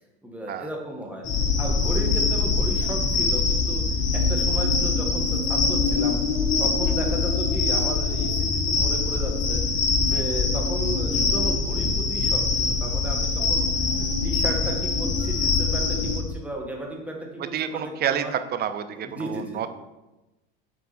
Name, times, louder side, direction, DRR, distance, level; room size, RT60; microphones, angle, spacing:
voice 1, 0.2-1.2 1.6-3.8 4.1-6.2 6.6-9.6 10.0-13.7 14.0-18.3 19.0-19.6, right 1 dB, 5° right, 0 dB, 1.6 m, -34 dB
sound 1, 1.2-16.2, left 4 dB, 40° left, 1.4 m, -23 dB
voice 2, 17.5-19.7, right 9 dB, 35° right, 11 dB, 0.6 m, -29 dB
7.5 x 4.6 x 4.2 m, 1.0 s
supercardioid pair, 110°, 29 cm